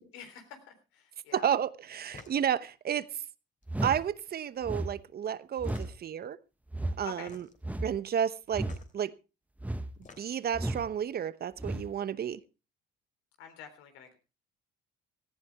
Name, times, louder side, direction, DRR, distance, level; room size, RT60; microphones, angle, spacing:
voice 1, 0.1-1.5 7.0-7.3 13.4-14.2, left 7 dB, 80° left, 7 dB, 3.7 m, -47 dB
voice 2, 1.3-3.2 3.8-6.4 7.0-7.4 7.8-8.7 8.9-9.1 10.2-12.4, right 9 dB, 50° right, 15 dB, 1.0 m, -31 dB
sound 1, 2.1-2.4 3.6-4.3 5.6-6.2 7.2-7.6 8.6-8.9 9.8-10.5, left 4 dB, 35° left, 3.3 m, -51 dB
sound 2, 3.7-4.0 4.6-4.9 5.6-5.9 6.7-7.0 7.6-8.0 8.5-8.8 9.6-9.9 10.5-10.9 11.6-11.9, right 1 dB, 5° right, 1.2 m, -33 dB
18.0 x 14.5 x 3.5 m, 0.31 s
supercardioid pair, 80°, 21 cm